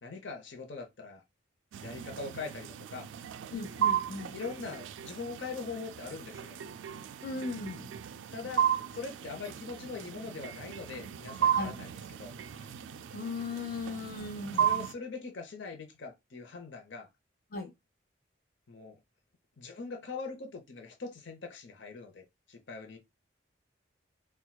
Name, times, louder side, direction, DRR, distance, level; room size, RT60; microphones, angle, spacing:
voice 1, 0.0-1.2 1.8-3.1 4.3-6.6 8.1-8.7 8.9-12.7 14.5-17.1 18.7-19.0 19.6-23.0, left 4 dB, 75° left, 0.8 m, -42 dB
sound 1, 1.7-14.9, right 9 dB, 80° right, 0.3 m, -35 dB
voice 2, 3.5-4.3 7.2-7.9 11.5-11.8 13.1-14.7 17.5-17.7, left 3 dB, 50° left, 0.9 m, -37 dB
4.4 x 2.2 x 2.2 m
head